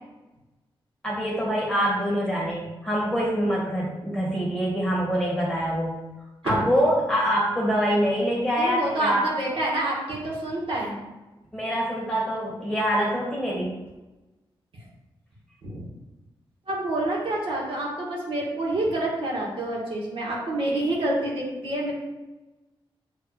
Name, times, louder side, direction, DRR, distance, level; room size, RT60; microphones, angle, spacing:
voice 1, 1.0-6.0 6.4-9.2 11.5-13.8, equal, 10° left, -5 dB, 2.1 m, -25 dB
voice 2, 8.6-10.9 15.6-15.8 16.7-21.9, right 1 dB, 70° right, -4 dB, 2.2 m, -27 dB
7.7 x 3.5 x 5.1 m, 1.1 s
wide cardioid pair, 145°, 9 cm